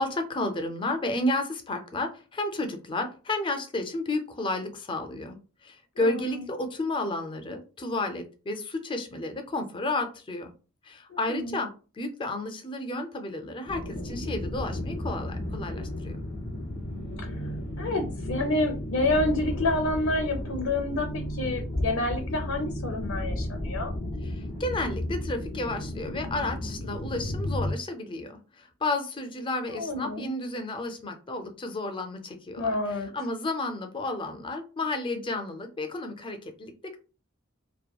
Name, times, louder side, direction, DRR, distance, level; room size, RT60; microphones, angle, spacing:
voice 1, 0.0-5.4 5.6-10.5 10.8-11.7 11.9-16.2 24.2-37.0, left 2 dB, 25° left, 6 dB, 0.4 m, -32 dB
voice 2, 11.1-11.6 17.2-17.3 17.8-23.9 29.7-30.3 32.6-33.1, left 2 dB, 80° left, 2 dB, 0.5 m, -28 dB
sound 1, 13.6-27.7, left 1 dB, 30° right, 1.1 m, -33 dB
2.8 x 2.1 x 2.2 m, 0.34 s
head